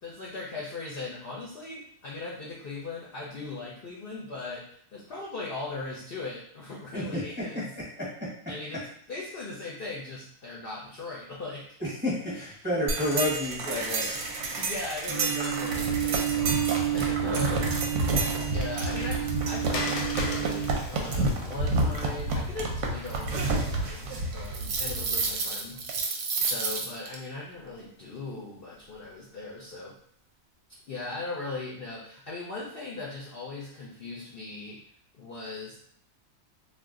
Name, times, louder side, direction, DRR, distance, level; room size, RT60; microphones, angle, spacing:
voice 1, 0.0-4.6 4.9-7.7 8.5-8.8 9.1-11.6 14.6-17.6 18.0-29.9 30.9-34.8 35.1-35.8, left 3 dB, 60° left, -5 dB, 0.6 m, -39 dB
voice 2, 11.8-14.2 17.0-17.1, left 1 dB, 10° right, -7 dB, 0.6 m, -30 dB
sound 1, 12.9-27.2, right 3 dB, 70° right, 0.8 m, -30 dB
sound 2, 15.1-20.8, right 12 dB, 40° right, 0.3 m, -31 dB
Water, 17.5-22.9, left 3 dB, 90° left, 1.1 m, -40 dB
2.4 x 2.2 x 3.6 m, 0.66 s
omnidirectional pair, 1.5 m